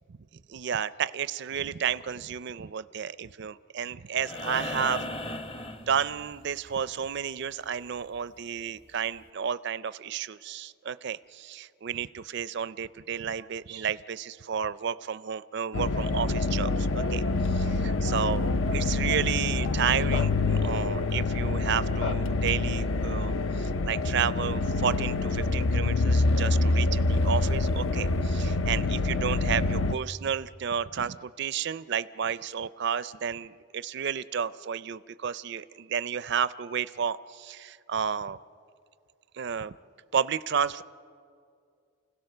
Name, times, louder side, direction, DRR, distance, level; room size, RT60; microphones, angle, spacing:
voice 1, 0.5-5.4 5.9-17.2 17.5-38.4 39.3-39.7 40.1-40.8, right 7 dB, 55° right, 15 dB, 0.4 m, -32 dB
sound 1, 4.2-6.5 8.4-8.5, left 2 dB, 25° left, 0.8 m, -36 dB
sound 2, 15.7-30.0, left 3 dB, 65° left, 0.6 m, -26 dB
29.0 x 16.5 x 6.7 m, 2.3 s
head